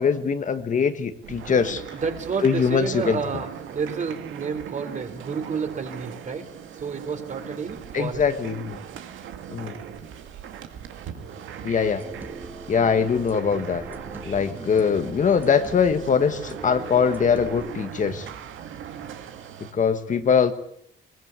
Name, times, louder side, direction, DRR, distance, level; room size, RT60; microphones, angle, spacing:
voice 1, 0.0-1.8 2.4-3.2 7.9-8.8 9.5-9.8 11.6-12.0 12.7-13.8 14.2-18.3 19.7-20.5, left 6 dB, 40° left, 9 dB, 1.4 m, -22 dB
sound 1, 1.2-19.7, right 8 dB, 80° right, 2.2 m, -39 dB
voice 2, 1.9-6.4 6.7-8.2, right 5 dB, 40° right, 7 dB, 3.2 m, -30 dB
sound 2, 12.0-17.7, right 2 dB, 10° right, 1.4 m, -41 dB
22.0 x 19.5 x 8.3 m, 0.70 s
cardioid pair, 130°, 20 cm